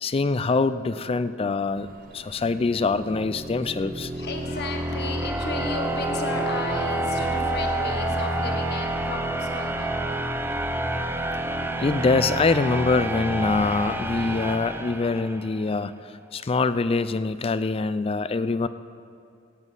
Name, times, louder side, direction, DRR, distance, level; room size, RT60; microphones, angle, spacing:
voice 1, 0.0-1.9 2.1-4.1 11.8-15.9 16.3-18.7, left 3 dB, 30° left, 14 dB, 0.4 m, -24 dB
sound 1, 1.8-8.6, right 1 dB, 45° right, 0.8 m, -42 dB
sound 2, 2.8-15.6, right 1 dB, 10° right, 0.7 m, -28 dB
voice 2, 4.1-10.2, left 3 dB, 55° left, 4 dB, 1.4 m, -35 dB
17.0 x 8.2 x 5.5 m, 2.5 s
head